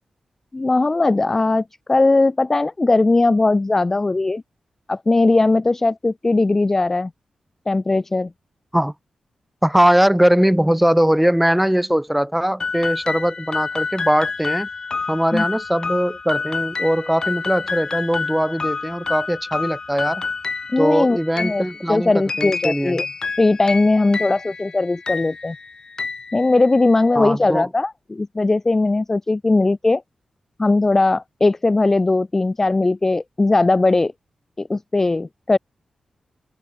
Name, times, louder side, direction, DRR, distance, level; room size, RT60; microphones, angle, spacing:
voice 1, 0.5-4.4 4.9-7.1 7.7-8.3 15.3-15.4 20.7-23.1 23.4-25.6 26.3-30.0 30.6-34.1 34.6-35.6, left 2 dB, 20° left, 0.4 m, -19 dB
voice 2, 9.6-14.7 15.1-20.2 20.8-23.0 27.1-27.7, equal, 5° right, 1.0 m, -20 dB
sound 1, 12.6-27.0, left 4 dB, 35° left, 2.4 m, -29 dB
wide cardioid pair, 180°, 2 cm